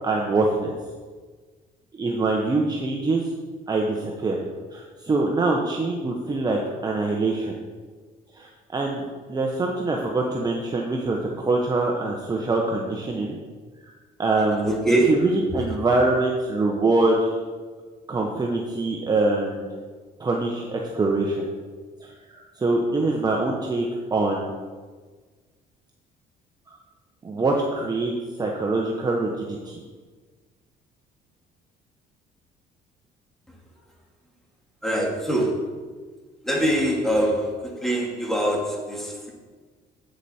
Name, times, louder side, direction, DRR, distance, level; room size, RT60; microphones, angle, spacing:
voice 1, 0.0-0.8 1.9-3.2 3.7-4.4 4.7-7.5 8.4-9.0 9.3-13.4 14.2-14.7 15.1-17.3 18.1-19.8 20.2-21.4 22.0-24.5 26.7-26.8 27.2-28.1 28.4-29.8, right 2 dB, 25° right, 0 dB, 1.0 m, -24 dB
voice 2, 14.6-15.2 34.8-35.8 36.4-39.3, right 1 dB, ahead, -2 dB, 2.2 m, -23 dB
8.4 x 8.1 x 4.3 m, 1.4 s
cardioid pair, 110°, 17 cm